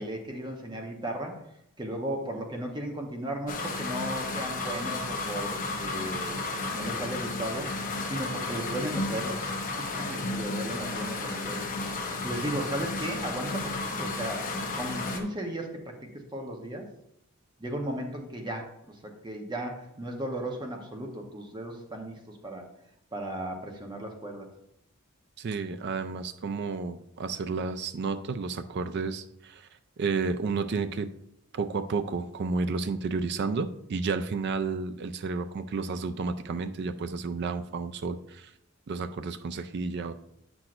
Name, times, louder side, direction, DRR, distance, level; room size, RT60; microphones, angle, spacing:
voice 1, 0.0-1.4 1.8-6.3 6.7-7.7 8.0-14.5 14.8-16.8 17.6-22.6 23.1-24.5, right 1 dB, 20° right, 2 dB, 0.8 m, -36 dB
sound 1, 3.5-15.2, left 3 dB, 40° left, 0.9 m, -33 dB
voice 2, 25.4-29.7 30.0-31.1 31.5-38.5 38.9-40.1, right 4 dB, 55° right, 11 dB, 0.4 m, -31 dB
8.8 x 6.0 x 2.5 m, 0.77 s
head